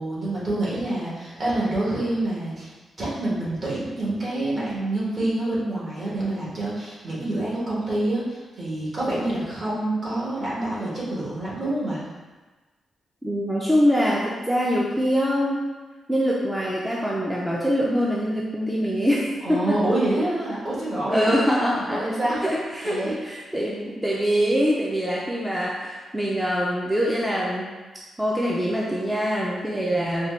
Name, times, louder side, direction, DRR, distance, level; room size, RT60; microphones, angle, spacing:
voice 1, 0.0-2.7 3.0-12.0 19.4-21.3 21.9-22.5 22.8-23.2 29.5-30.1, right 1 dB, 45° right, -7 dB, 1.2 m, -27 dB
voice 2, 13.2-15.7 16.1-19.8 21.1-22.0 22.4-27.7 28.2-30.3, equal, 5° right, -5 dB, 0.4 m, -24 dB
4.0 x 2.2 x 3.1 m, 1.3 s
cardioid pair, 125°, 0 cm